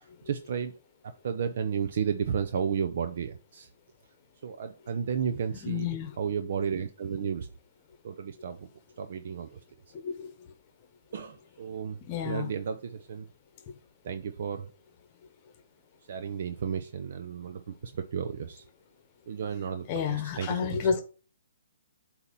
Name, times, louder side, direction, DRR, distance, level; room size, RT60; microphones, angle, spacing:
voice 1, 0.3-0.7 1.0-3.7 4.4-5.9 6.2-7.5 8.0-8.7 9.0-9.6 11.1-13.3 14.0-14.7 16.1-18.6 19.3-20.9, right 7 dB, 55° right, 0.6 m, -33 dB
voice 2, 5.6-6.1 10.0-10.3 12.1-12.5 19.9-21.0, left 7 dB, 30° left, 1.0 m, -30 dB
8.1 x 2.9 x 5.2 m
hypercardioid pair, 150°, 0 cm